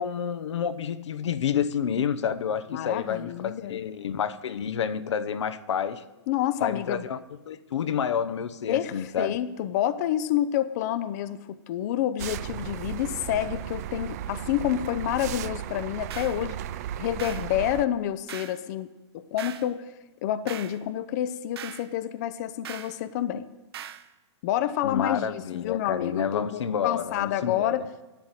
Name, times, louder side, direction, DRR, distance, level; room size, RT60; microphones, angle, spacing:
voice 1, 0.0-6.0 6.6-7.2 7.5-9.4 24.8-27.7, left 7 dB, 80° left, 0.9 m, -29 dB
voice 2, 2.7-3.8 6.3-7.0 8.7-16.6 17.0-18.9 19.1-19.9 20.2-23.5 24.4-27.9, left 11 dB, 35° left, 0.6 m, -28 dB
sound 1, 12.2-17.9, right 11 dB, 35° right, 0.3 m, -35 dB
sound 2, 16.1-16.4 17.2-17.5 18.3-18.6 19.4-19.7 20.5-20.8 21.6-21.9 22.6-23.0 23.7-24.1, right 10 dB, 60° right, 1.0 m, -40 dB
11.5 x 8.0 x 8.9 m
hypercardioid pair, 155°, 15 cm